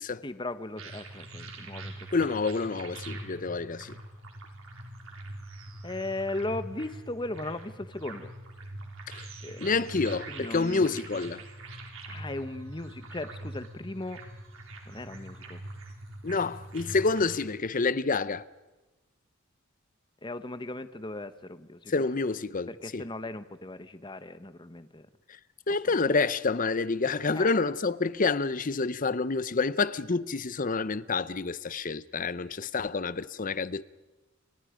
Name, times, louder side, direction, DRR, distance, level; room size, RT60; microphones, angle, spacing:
voice 1, 0.2-2.3 5.8-8.3 9.4-9.9 10.3-10.9 12.1-14.2 14.9-15.6 20.2-21.9 22.7-25.1 27.4-27.5, left 2 dB, 25° left, 1.2 m, -37 dB
sound 1, 0.8-17.6, right 2 dB, 85° right, 4.5 m, -43 dB
voice 2, 2.1-4.0 9.1-9.2 9.6-11.4 16.2-18.4 21.9-23.0 25.7-33.8, left 4 dB, 40° left, 0.8 m, -28 dB
30.0 x 25.5 x 5.1 m
head